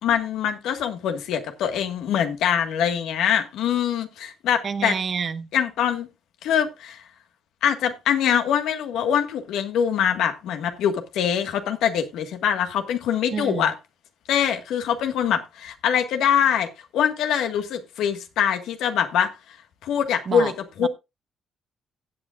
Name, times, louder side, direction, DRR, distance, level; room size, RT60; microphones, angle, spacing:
voice 1, 0.0-4.9 5.5-6.1 6.4-7.0 7.6-13.7 14.3-19.3 19.8-20.5 20.8-20.9, left 8 dB, 85° left, 1.6 m, -23 dB
voice 2, 4.6-5.5 13.3-13.7 20.3-20.5 20.8-20.9, right 6 dB, 50° right, 0.9 m, -28 dB
16.0 x 8.6 x 2.4 m
cardioid pair, 90°, 0 cm